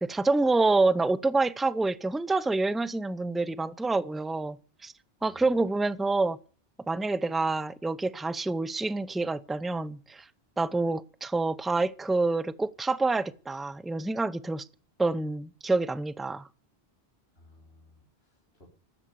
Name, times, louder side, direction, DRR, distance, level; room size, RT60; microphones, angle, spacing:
voice 1, 0.0-4.6 4.8-4.9 5.2-6.4 6.9-10.2 10.6-14.6 15.0-16.4, right 3 dB, ahead, 0.6 m, -27 dB
voice 2, 5.2-5.6 17.3-18.7, left 1 dB, 70° left, 4.0 m, -58 dB
16.0 x 12.5 x 6.9 m
omnidirectional pair, 1.1 m